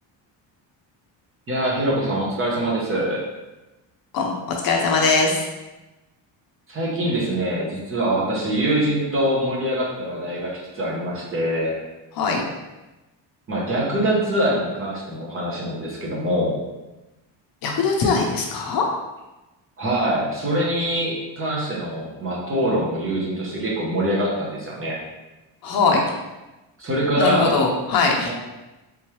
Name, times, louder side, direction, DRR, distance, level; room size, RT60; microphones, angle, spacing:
voice 1, 1.5-3.2 6.7-11.7 13.5-16.6 19.8-25.0 26.8-27.5 28.2-28.3, right 1 dB, 30° right, -4 dB, 0.8 m, -24 dB
voice 2, 4.6-5.5 12.1-12.4 17.6-18.8 25.6-26.0 27.2-28.3, left 4 dB, 50° left, 0 dB, 0.6 m, -20 dB
3.4 x 3.1 x 3.0 m, 1.1 s
cardioid pair, 160°, 46 cm